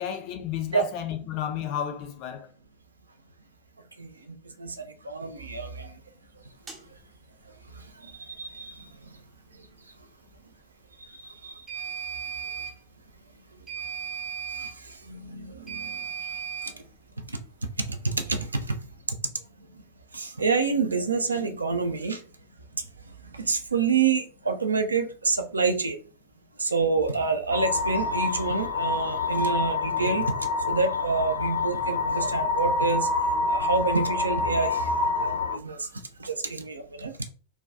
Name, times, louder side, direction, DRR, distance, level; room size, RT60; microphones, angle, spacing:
voice 1, 0.0-2.5, left 9 dB, 45° left, 0.5 m, -32 dB
voice 2, 4.0-6.0 6.4-6.5 7.5-9.2 9.6-9.7 11.1-11.6 14.5-16.3 16.6-16.8 17.3-18.8 19.1-19.2 19.7-19.8 20.1-22.2 22.7-26.0 26.6-33.1 33.5-37.1, right 4 dB, 75° right, 0.3 m, -28 dB
sound 1, 6.7-6.8 11.7-12.8 13.7-14.8 15.7-16.8, right 7 dB, 20° right, 0.5 m, -35 dB
sound 2, 27.5-35.5, left 3 dB, 90° left, 0.8 m, -27 dB
2.3 x 2.2 x 2.5 m
figure-of-eight pair, 90°, 0 cm